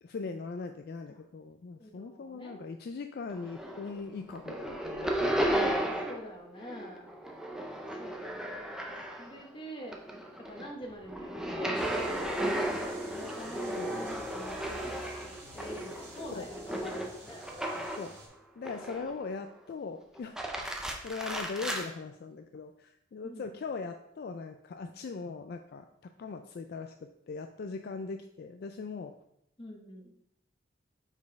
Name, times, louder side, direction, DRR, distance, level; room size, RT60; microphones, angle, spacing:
voice 1, 0.0-5.5 13.8-13.9 16.3-16.5 18.0-18.1 18.6-20.4 21.0-29.1, left 4 dB, 55° left, 6 dB, 0.3 m, -40 dB
voice 2, 1.8-2.6 6.0-7.1 8.0-8.4 9.2-10.0 10.4-17.5 23.2-23.5 29.6-30.1, equal, 25° left, 0 dB, 1.0 m, -46 dB
sound 1, 3.3-4.0 4.3-6.3 6.6-9.4 9.8-18.2 18.6-19.3 20.1-21.9, right 1 dB, 5° right, 0.5 m, -34 dB
sound 2, 11.7-18.3, right 1 dB, 60° right, 2.4 m, -51 dB
5.3 x 4.2 x 4.6 m, 0.79 s
head